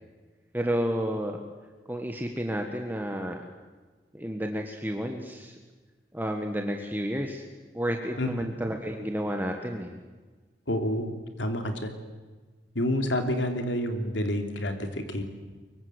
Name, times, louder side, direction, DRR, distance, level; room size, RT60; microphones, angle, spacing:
voice 1, 0.5-1.4 1.9-3.4 4.1-5.5 6.1-7.4 7.7-9.9, equal, 10° right, 3 dB, 1.6 m, -31 dB
voice 2, 8.2-8.5 10.7-11.9 12.7-15.2, left 1 dB, 85° left, 6 dB, 3.1 m, -29 dB
24.0 x 23.0 x 8.1 m, 1.3 s
head